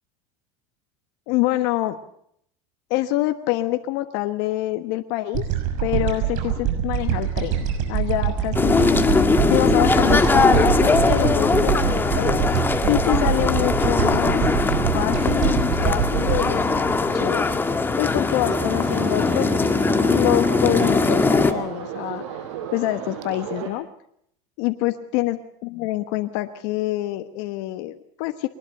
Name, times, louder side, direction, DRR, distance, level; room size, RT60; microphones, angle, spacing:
voice 1, 1.3-2.0 2.9-5.5 5.8-9.0 9.5-12.4 12.9-14.4 14.9-17.6 18.0-19.5 20.1-22.2 22.7-23.9 24.6-28.5, left 16 dB, 70° left, 8 dB, 1.3 m, -26 dB
sound 1, 5.3-17.8, right 9 dB, 55° right, 6.3 m, -24 dB
sound 2, 8.5-21.5, left 3 dB, 15° left, 1.8 m, -20 dB
sound 3, 18.4-23.7, right 8 dB, 80° right, 5.2 m, -33 dB
23.5 x 20.0 x 6.7 m, 0.70 s
supercardioid pair, 125°, 15 cm